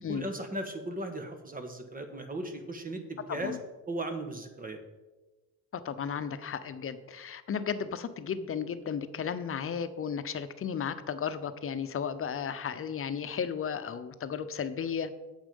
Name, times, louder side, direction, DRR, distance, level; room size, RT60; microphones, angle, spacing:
voice 1, 0.1-3.6 3.9-4.8, right 1 dB, 30° right, 6 dB, 1.5 m, -37 dB
voice 2, 5.7-15.1, left 7 dB, 45° left, 11 dB, 0.8 m, -34 dB
8.8 x 7.3 x 5.4 m, 1.1 s
cardioid pair, 90°, 30 cm